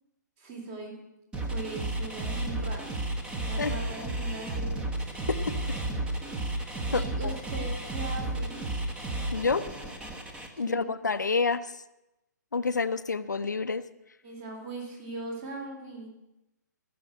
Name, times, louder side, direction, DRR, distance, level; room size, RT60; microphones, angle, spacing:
voice 1, 0.4-1.0 1.5-3.0 3.4-4.7 6.9-8.6 10.6-10.9 14.2-16.1, right 2 dB, 30° right, 1 dB, 3.4 m, -40 dB
sound 1, 1.3-10.5, right 2 dB, 10° right, 1.3 m, -32 dB
voice 2, 6.9-7.3 9.3-9.6 10.6-11.7 12.5-13.8, left 4 dB, 70° left, 11 dB, 0.7 m, -28 dB
15.0 x 6.8 x 9.0 m, 0.95 s
figure-of-eight pair, 130°, 10 cm